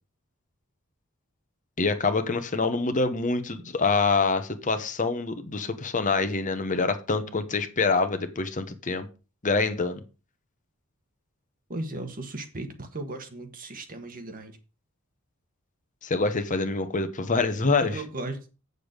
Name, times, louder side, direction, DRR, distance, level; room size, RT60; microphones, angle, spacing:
voice 1, 1.8-9.1 9.4-10.0 16.0-18.0, left 4 dB, 35° left, 1.0 m, -26 dB
voice 2, 11.7-14.6 17.7-18.5, right 2 dB, 40° right, 1.5 m, -36 dB
8.4 x 6.8 x 5.2 m
head